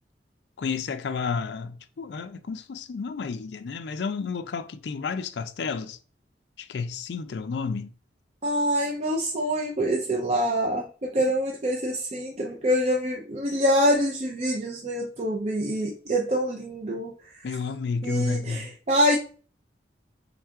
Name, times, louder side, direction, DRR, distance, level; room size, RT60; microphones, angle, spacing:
voice 1, 0.6-6.0 6.6-7.9 17.4-18.7, left 5 dB, 70° left, 0.4 m, -31 dB
voice 2, 8.4-17.1 18.0-19.2, equal, 35° right, 0.5 m, -25 dB
3.6 x 2.4 x 4.5 m
head